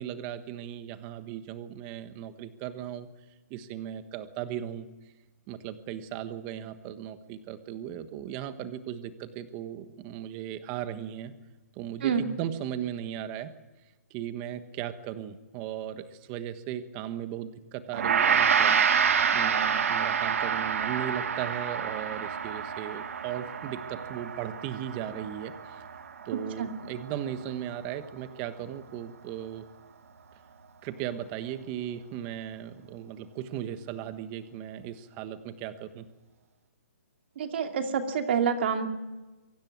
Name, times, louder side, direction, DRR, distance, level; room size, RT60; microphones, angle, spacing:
voice 1, 0.0-3.1 3.5-4.9 5.5-11.3 11.8-13.5 14.1-18.8 19.3-25.8 26.2-29.6 30.8-36.1, right 10 dB, 20° right, 11 dB, 1.3 m, -37 dB
Gong, 17.9-27.3, right 7 dB, 60° right, 1.9 m, -28 dB
voice 2, 37.4-38.9, right 7 dB, 45° right, 5 dB, 2.5 m, -27 dB
24.0 x 16.5 x 9.5 m, 1.1 s
hypercardioid pair, 165°, 9 cm